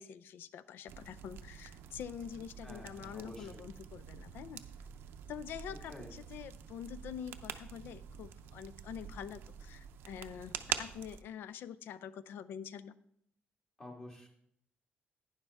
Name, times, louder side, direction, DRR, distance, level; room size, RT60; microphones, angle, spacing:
voice 1, 0.0-4.6 5.3-12.9, left 8 dB, 75° left, 15 dB, 0.4 m, -46 dB
sound 1, 0.9-11.2, right 9 dB, 90° right, 0.6 m, -45 dB
voice 2, 2.6-3.6 5.7-6.1 13.8-14.3, left 1 dB, 20° left, 1 dB, 1.7 m, -50 dB
11.5 x 9.9 x 3.4 m, 0.72 s
cardioid pair, 165°, 4 cm